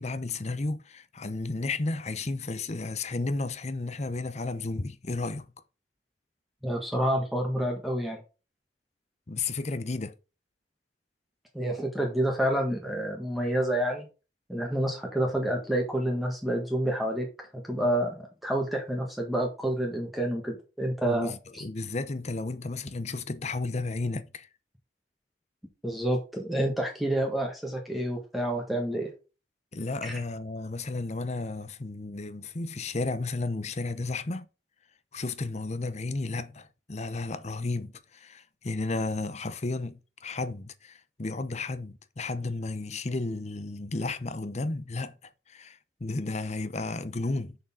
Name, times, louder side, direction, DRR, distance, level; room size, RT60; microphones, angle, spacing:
voice 1, 0.0-5.5 9.3-10.1 21.0-24.5 29.7-34.5 35.1-45.1 45.5-47.6, left 3 dB, 40° left, 0.7 m, -33 dB
voice 2, 6.6-8.2 11.5-14.0 14.5-18.1 18.4-21.6 25.8-29.1 30.0-30.2, right 1 dB, ahead, 1.6 m, -28 dB
6.6 x 6.5 x 3.7 m
head